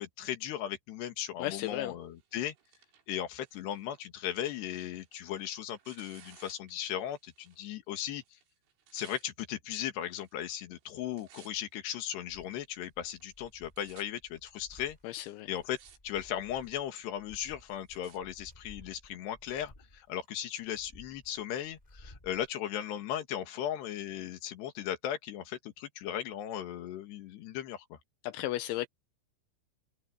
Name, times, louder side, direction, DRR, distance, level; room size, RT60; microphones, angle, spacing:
voice 1, 0.0-2.5 3.1-8.2 8.9-15.0 15.5-15.8 16.0-28.0, left 11 dB, 65° left, 3.8 m, -37 dB
voice 2, 1.4-1.9 15.0-15.5 28.2-28.9, left 15 dB, 80° left, 3.1 m, -34 dB
Tearing, 2.2-7.6 7.9-9.3 10.0-10.5 10.8-11.7 12.4-12.5 13.2-13.3 13.5-14.0 14.8-14.9 15.4-16.0 16.3-16.8 17.3-18.2 19.0-19.1, right 8 dB, 70° right, 5.6 m, -59 dB
sound 1, 12.3-22.5, left 1 dB, 10° left, 3.4 m, -57 dB
open air
omnidirectional pair, 5.7 m